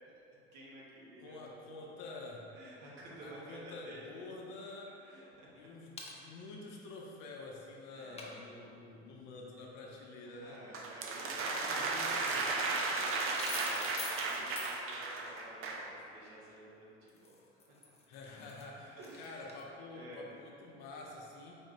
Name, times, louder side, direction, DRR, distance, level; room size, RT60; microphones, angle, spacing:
voice 1, 0.5-1.5 2.5-4.1 5.0-5.5 7.9-8.3 10.3-11.6 12.9-17.3 17.7-17.8 19.0-19.5 19.9-20.2, right 1 dB, 55° right, -5 dB, 1.3 m, -52 dB
voice 2, 1.2-2.4 3.2-4.9 5.6-10.6 11.2-12.8 18.1-21.6, left 3 dB, 55° left, -2 dB, 0.8 m, -48 dB
sound 1, 6.0-6.2 8.2-8.3 11.5-11.6 12.1-12.2 12.5-14.7 17.1-19.6, left 3 dB, 20° left, 0.7 m, -46 dB
sound 2, 10.7-15.9, right 3 dB, 40° right, 0.5 m, -35 dB
4.4 x 3.6 x 3.3 m, 2.7 s
figure-of-eight pair, 65°, 35 cm